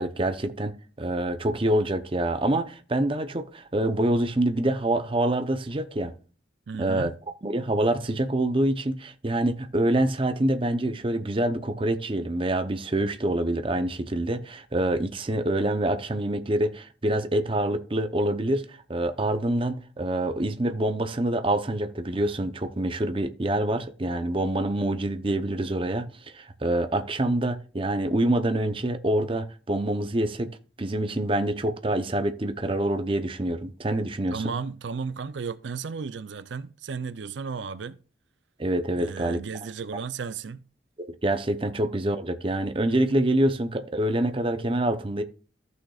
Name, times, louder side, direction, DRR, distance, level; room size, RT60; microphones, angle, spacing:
voice 1, 0.0-6.1 6.8-7.1 7.4-30.5 30.8-34.5 38.6-39.4 41.0-45.2, right 1 dB, 30° right, 0.7 m, -26 dB
voice 2, 6.7-7.1 34.3-38.0 39.0-40.6, right 5 dB, 75° right, 0.5 m, -34 dB
14.5 x 6.3 x 2.4 m
head